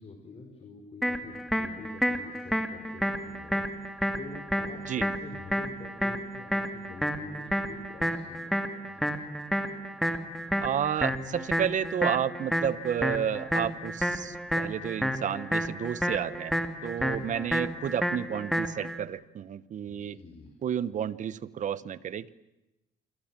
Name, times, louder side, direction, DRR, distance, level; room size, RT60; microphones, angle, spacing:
voice 1, 0.0-3.9 4.1-8.4 8.8-9.1 17.0-17.2 19.8-20.5, left 4 dB, 35° left, 4 dB, 4.7 m, -47 dB
sound 1, 1.0-19.0, equal, ahead, 2.4 m, -31 dB
voice 2, 10.6-16.6 16.8-20.2 20.6-22.3, right 9 dB, 50° right, 17 dB, 1.1 m, -31 dB
28.0 x 25.5 x 7.6 m, 0.95 s
cardioid pair, 110°, 17 cm